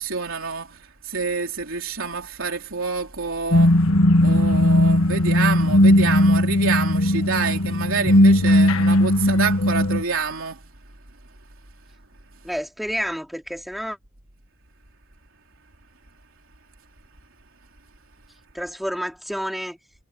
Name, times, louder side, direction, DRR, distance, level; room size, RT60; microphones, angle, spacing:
voice 1, 0.0-3.8 4.2-10.6, right 5 dB, 80° right, 3.5 m, -28 dB
sound 1, 3.5-10.0, left 1 dB, 90° left, 1.6 m, -17 dB
voice 2, 12.4-14.0 18.5-19.8, equal, ahead, 4.3 m, -29 dB
head